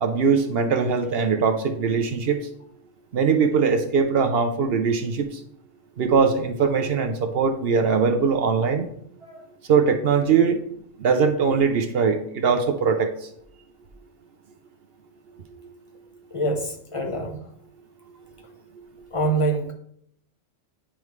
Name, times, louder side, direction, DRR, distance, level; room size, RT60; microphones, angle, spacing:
voice 1, 0.0-2.4 3.1-5.3 6.0-8.9 9.7-10.6 11.0-13.1, right 5 dB, 60° right, 6 dB, 0.8 m, -21 dB
voice 2, 16.3-17.4 19.1-19.7, right 2 dB, 25° left, 2 dB, 1.0 m, -25 dB
9.9 x 3.6 x 3.1 m, 0.69 s
omnidirectional pair, 1.3 m